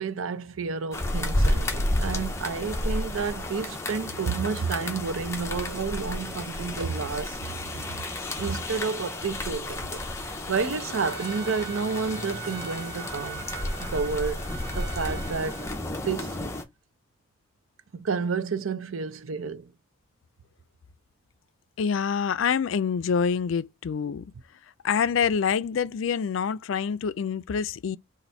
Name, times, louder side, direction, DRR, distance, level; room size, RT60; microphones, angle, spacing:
voice 1, 0.0-7.6 7.8-8.1 8.4-10.0 10.2-13.5 13.8-15.6 16.0-16.4 17.9-19.7, right 5 dB, 90° right, 0.6 m, -30 dB
sound 1, 0.9-16.6, left 1 dB, 15° left, 0.6 m, -31 dB
Trumpet, 10.9-15.8, right 8 dB, 50° right, 0.9 m, -42 dB
voice 2, 21.8-24.3 24.8-28.0, left 6 dB, 75° left, 0.4 m, -26 dB
4.1 x 2.6 x 4.3 m
head